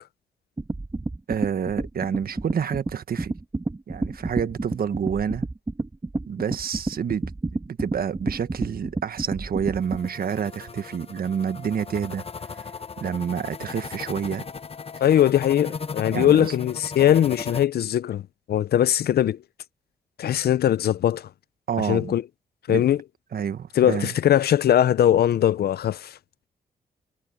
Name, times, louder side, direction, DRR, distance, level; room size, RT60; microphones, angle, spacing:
sound 1, 0.6-10.1, right 2 dB, 25° right, 2.2 m, -30 dB
voice 1, 1.3-3.3 3.9-5.5 6.3-12.2 12.6-12.7 13.0-14.5 16.1-16.5 21.7-22.1 22.7-22.8 23.3-24.1, right 7 dB, 65° right, 1.4 m, -28 dB
sound 2, 9.7-17.6, left 5 dB, 35° left, 1.0 m, -37 dB
voice 2, 15.0-18.2 18.5-19.4 20.2-21.3 21.9-22.2 22.7-23.0 23.8-26.2, left 11 dB, 75° left, 0.6 m, -20 dB
cardioid pair, 65°, 16 cm